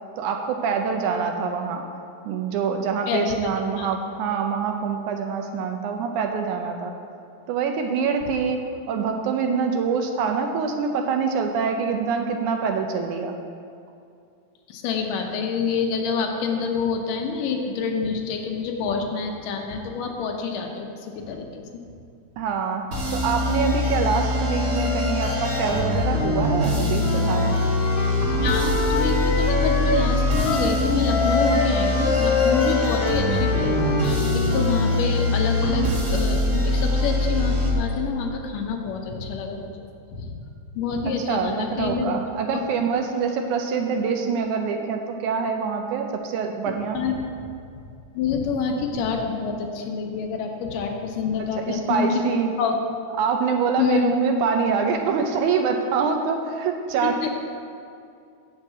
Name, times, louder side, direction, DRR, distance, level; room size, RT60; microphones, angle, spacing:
voice 1, 0.2-1.9 2.3-6.9 7.5-13.4 22.4-22.9 23.1-27.6 41.3-47.0 51.6-52.5 53.2-57.3, right 5 dB, 75° right, 4 dB, 2.0 m, -25 dB
voice 2, 3.1-3.5 3.8-3.9 14.7-21.6 28.4-39.8 40.1-40.3 40.8-42.1 42.5-42.6 46.9-47.2 48.1-52.2 52.6-52.8 53.8-54.1 57.2-57.3, left 5 dB, 85° left, 2 dB, 2.5 m, -27 dB
sound 1, 22.9-37.7, left 2 dB, 50° right, 0.9 m, -23 dB
Wind instrument woodwind instrument, 27.0-30.8 31.0-35.0, left 3 dB, 60° left, 2.1 m, -26 dB
7.5 x 6.5 x 7.6 m, 2.4 s
omnidirectional pair, 3.7 m